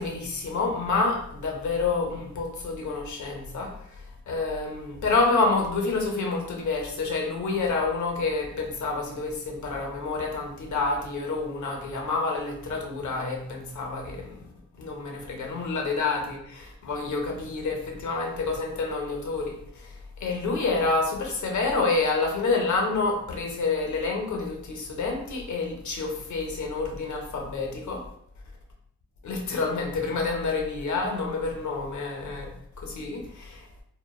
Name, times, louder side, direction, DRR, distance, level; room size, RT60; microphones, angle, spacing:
voice 1, 0.0-28.1 29.2-33.8, left 3 dB, 70° left, 1 dB, 0.6 m, -28 dB
3.0 x 2.1 x 2.2 m, 0.70 s
wide cardioid pair, 175°, 31 cm